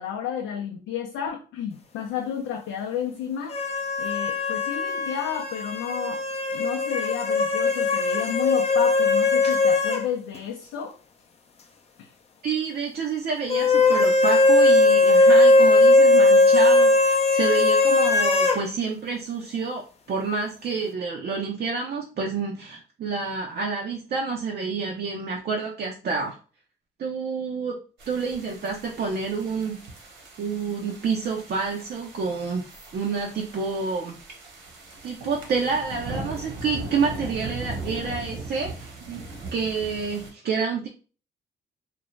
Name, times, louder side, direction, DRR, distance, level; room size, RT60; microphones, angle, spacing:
voice 1, 0.0-3.6 4.0-6.2 6.5-10.9 12.0-12.1, left 8 dB, 85° left, 1 dB, 0.5 m, -31 dB
sound 1, 3.5-10.1 10.3-10.4 13.5-18.6, left 2 dB, 30° left, 0.5 m, -19 dB
voice 2, 12.4-26.4 27.0-27.8 28.1-29.8 30.4-34.2 35.0-39.2 39.5-40.9, right 5 dB, 55° right, -1 dB, 0.5 m, -28 dB
sound 2, 28.0-40.3, right 2 dB, 70° right, 1.1 m, -39 dB
2.5 x 2.0 x 3.1 m, 0.37 s
cardioid pair, 90°, 20 cm